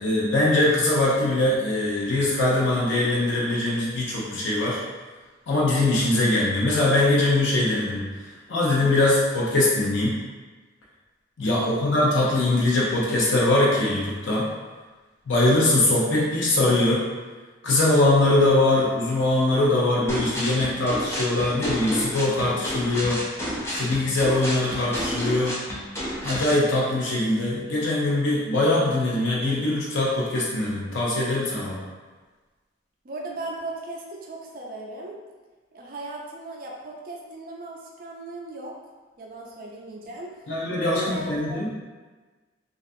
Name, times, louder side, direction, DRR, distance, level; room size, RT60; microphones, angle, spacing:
voice 1, 0.0-4.8 5.5-8.0 8.5-10.2 11.4-14.5 15.3-17.0 17.6-23.2 23.7-25.5 26.2-31.8 40.5-41.7, left 2 dB, 75° left, -5 dB, 0.5 m, -22 dB
voice 2, 11.4-12.0 33.0-35.2 35.7-38.7 39.2-40.4 40.8-41.6, right 2 dB, 45° right, -2 dB, 0.4 m, -37 dB
sound 1, 20.1-26.6, equal, 15° left, 0.4 m, -31 dB
2.5 x 2.3 x 2.5 m, 1.3 s
head